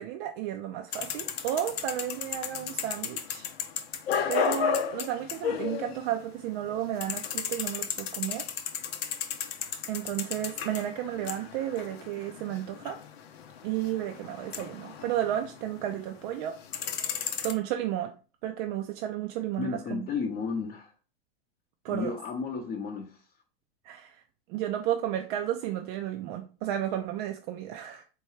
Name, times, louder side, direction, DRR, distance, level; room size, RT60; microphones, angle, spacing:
voice 1, 0.0-3.5 4.3-8.4 9.9-13.0 13.6-16.6 17.4-18.1 18.4-20.1 21.8-22.2 23.8-24.2 24.5-28.0, right 11 dB, 55° right, 0.5 m, -32 dB
sound 1, 0.9-6.4 6.6-16.0 16.4-17.5, left 8 dB, 85° left, 0.6 m, -34 dB
voice 2, 19.6-20.9 21.9-23.1, left 5 dB, 30° left, 0.7 m, -33 dB
4.5 x 2.3 x 3.1 m
hypercardioid pair, 110°, 30 cm